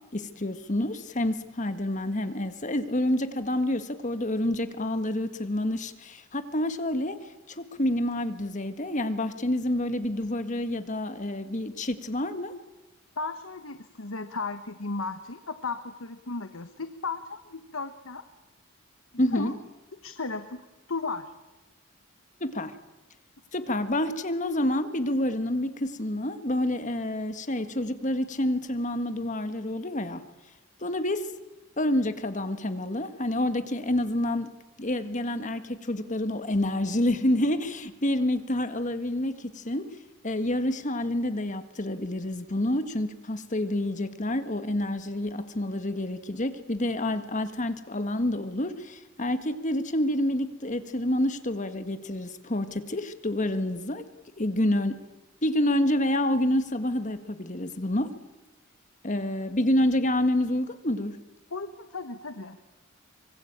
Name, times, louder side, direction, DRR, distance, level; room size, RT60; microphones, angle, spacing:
voice 1, 0.1-7.2 7.5-12.6 19.2-19.6 22.4-22.7 23.5-30.2 30.8-31.3 31.8-34.5 34.8-40.0 40.2-54.1 54.4-55.0 55.4-58.2 59.0-61.2, left 1 dB, 35° left, 1.6 m, -28 dB
voice 2, 13.2-18.2 19.3-19.5 20.0-20.6 20.9-21.3 61.5-62.6, left 3 dB, 80° left, 1.3 m, -35 dB
24.5 x 23.5 x 8.9 m
head